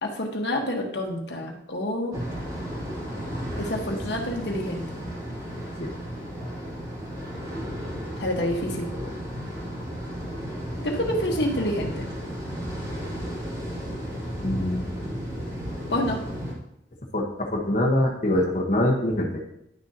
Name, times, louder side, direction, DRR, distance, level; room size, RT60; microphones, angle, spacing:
voice 1, 0.0-2.2 3.6-4.8 8.2-8.9 10.8-12.1 15.9-16.2, left 1 dB, 80° left, 1 dB, 1.3 m, -28 dB
sound 1, 2.1-16.5, equal, 20° right, 2.3 m, -34 dB
voice 2, 14.4-14.8 17.1-19.4, left 1 dB, 45° left, -2 dB, 1.2 m, -24 dB
10.5 x 6.5 x 2.8 m, 0.81 s
head